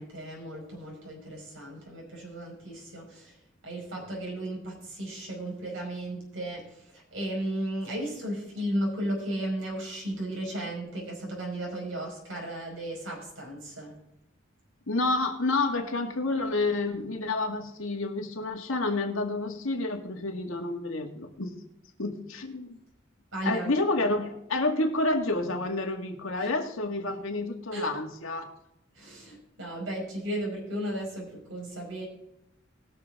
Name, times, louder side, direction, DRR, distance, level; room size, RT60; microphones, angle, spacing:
voice 1, 0.0-3.4 3.6-13.9 23.3-23.7 26.4-26.5 27.7-27.9 29.0-32.0, right 1 dB, 70° right, -1 dB, 5.3 m, -35 dB
voice 2, 14.9-21.6 22.0-22.8 23.4-28.4, left 2 dB, 80° left, 2 dB, 1.9 m, -29 dB
20.0 x 6.8 x 3.7 m, 0.83 s
head